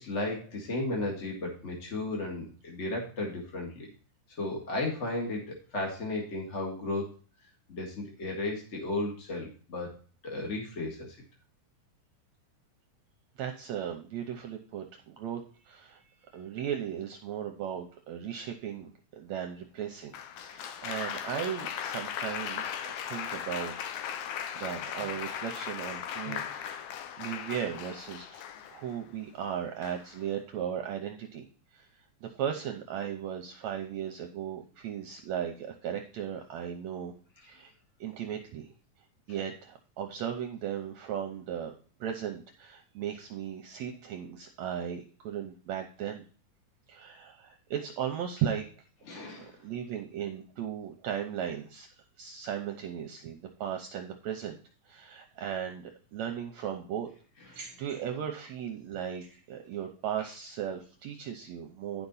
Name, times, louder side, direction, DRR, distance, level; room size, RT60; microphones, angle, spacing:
voice 1, 0.0-3.9 4.4-7.1 7.7-10.0 10.2-11.2 49.1-49.6, left 2 dB, 30° left, 0 dB, 1.4 m, -34 dB
voice 2, 13.4-16.0 16.3-22.7 23.0-23.7 24.5-31.5 31.7-37.1 37.4-37.7 38.0-38.7 39.3-41.7 42.0-46.2 46.9-48.7 49.4-51.9 52.2-54.6 54.9-57.1 57.4-62.1, right 9 dB, 75° right, 4 dB, 1.8 m, -37 dB
Applause, 20.1-29.0 29.8-30.2, left 9 dB, 75° left, 2.1 m, -38 dB
10.5 x 5.9 x 4.0 m, 0.39 s
omnidirectional pair, 3.8 m